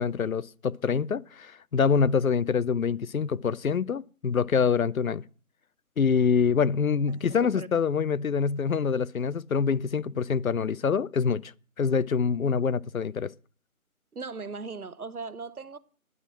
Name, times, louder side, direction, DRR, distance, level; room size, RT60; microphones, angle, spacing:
voice 1, 0.0-5.2 6.0-11.5 11.8-13.3, left 6 dB, 70° left, 0.7 m, -25 dB
voice 2, 14.1-15.8, right 4 dB, 85° right, 1.1 m, -38 dB
11.0 x 6.0 x 8.6 m
figure-of-eight pair, 160°, 43 cm